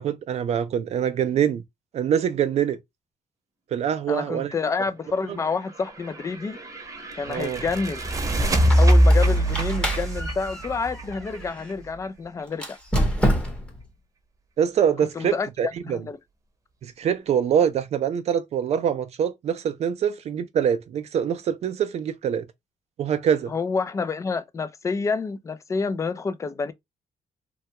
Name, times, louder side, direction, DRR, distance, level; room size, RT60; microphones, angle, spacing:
voice 1, 0.0-1.6 1.9-2.8 3.7-4.5 5.3-5.4 7.3-7.6 14.6-16.0 16.8-22.5 23.0-23.5, right 8 dB, 55° right, 0.4 m, -24 dB
voice 2, 4.1-6.6 7.2-8.0 8.8-12.8 15.2-15.5 15.9-16.2 23.5-26.7, left 4 dB, 25° left, 0.3 m, -28 dB
sound 1, 6.0-11.7, right 1 dB, 25° right, 0.8 m, -22 dB
Squeak, 8.5-11.7 12.5-13.8, equal, 10° left, 0.8 m, -28 dB
3.3 x 2.2 x 2.8 m
cardioid pair, 150°, 13 cm